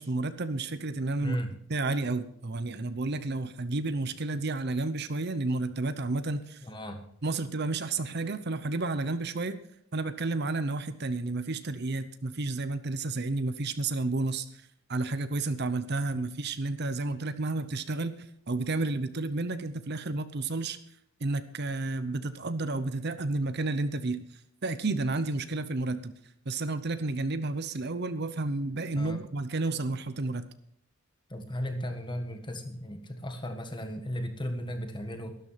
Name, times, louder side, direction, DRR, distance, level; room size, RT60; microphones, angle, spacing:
voice 1, 0.0-1.4 1.7-6.7 7.2-9.6 9.9-20.8 21.2-24.2 24.6-26.1 26.5-30.5, right 2 dB, 50° right, 12 dB, 0.8 m, -31 dB
voice 2, 6.6-7.0 28.9-29.2 31.3-35.3, equal, 20° left, 6 dB, 1.6 m, -35 dB
12.5 x 12.0 x 5.7 m, 0.67 s
head